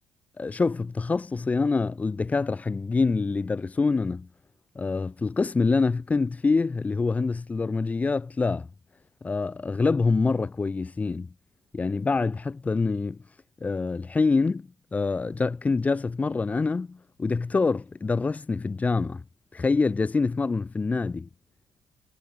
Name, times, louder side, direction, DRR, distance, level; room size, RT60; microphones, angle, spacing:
voice 1, 0.4-4.3 4.8-8.7 9.2-11.3 11.7-13.2 13.6-19.2 19.5-21.3, left 4 dB, 25° left, 7.3 m, -26 dB
cardioid pair, 90°, 6 cm